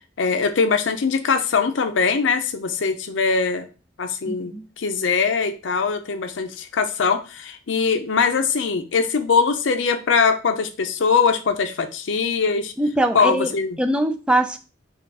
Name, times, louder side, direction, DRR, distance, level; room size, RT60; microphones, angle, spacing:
voice 1, 0.2-3.7 4.0-12.7 13.1-13.8, left 5 dB, 85° left, 8 dB, 0.5 m, -22 dB
voice 2, 4.3-4.6 12.8-13.5 13.8-14.6, right 1 dB, 5° right, 7 dB, 0.4 m, -22 dB
4.6 x 2.3 x 4.7 m, 0.32 s
head